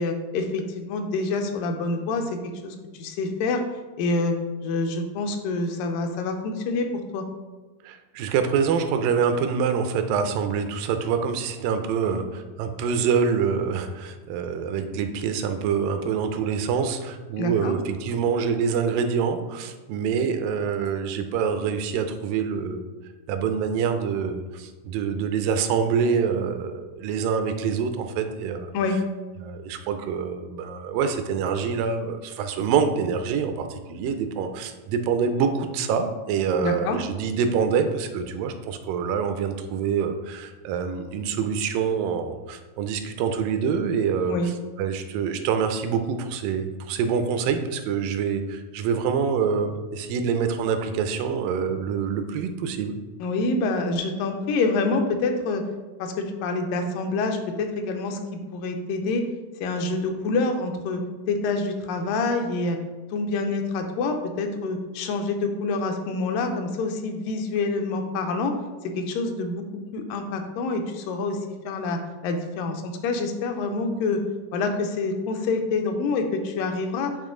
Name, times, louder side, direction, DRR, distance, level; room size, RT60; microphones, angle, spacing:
voice 1, 0.0-2.4 2.6-3.6 4.0-4.4 4.6-7.3 17.4-17.7 28.7-29.0 36.6-37.0 44.2-44.5 53.2-55.6 56.0-58.2 58.5-59.2 59.6-61.0 61.3-62.8 63.1-68.5 68.8-69.6 69.9-71.4 71.7-74.2 74.5-77.1, left 3 dB, 80° left, 5 dB, 2.2 m, -26 dB
voice 2, 7.8-22.9 23.3-28.7 29.4-44.4 44.8-52.9, right 6 dB, 85° right, 7 dB, 2.2 m, -26 dB
8.3 x 3.1 x 3.7 m, 1.2 s
omnidirectional pair, 3.9 m